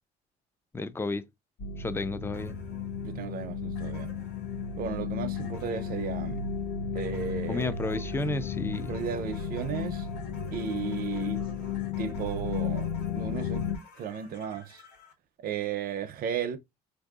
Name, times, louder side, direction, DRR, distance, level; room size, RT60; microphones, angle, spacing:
voice 1, 0.7-1.2 1.8-2.6 7.5-8.9, left 3 dB, 15° left, 0.4 m, -32 dB
sound 1, 1.6-13.8, left 6 dB, 70° left, 0.7 m, -34 dB
sound 2, 2.3-15.1, left 4 dB, 85° left, 1.4 m, -55 dB
voice 2, 3.0-4.1 4.8-6.4 6.9-7.7 8.9-10.1 10.5-11.4 12.0-12.9 13.1-13.6 14.0-14.8 15.4-16.6, right 8 dB, 60° right, 0.6 m, -34 dB
4.4 x 2.6 x 2.4 m
cardioid pair, 110°, 17 cm